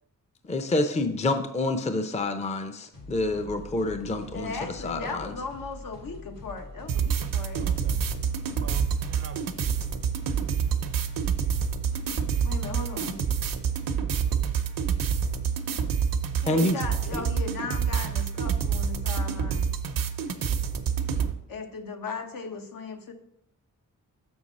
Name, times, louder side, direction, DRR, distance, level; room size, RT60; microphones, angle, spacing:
voice 1, 0.4-5.3 16.5-16.8 17.1-17.3, left 2 dB, 20° left, 0.6 m, -28 dB
sound 1, 2.9-13.2, left 2 dB, 50° left, 1.6 m, -44 dB
voice 2, 4.3-8.0 12.4-13.2 16.4-19.7 21.5-23.1, left 4 dB, 80° left, 1.2 m, -37 dB
sound 2, 6.9-21.3, right 7 dB, 80° right, 0.8 m, -27 dB
voice 3, 7.6-8.0 8.6-9.7 13.0-13.3 13.5-13.9 14.1-14.5 15.2-15.3, right 6 dB, 45° right, 0.5 m, -45 dB
7.1 x 6.3 x 4.1 m
wide cardioid pair, 115°, 33 cm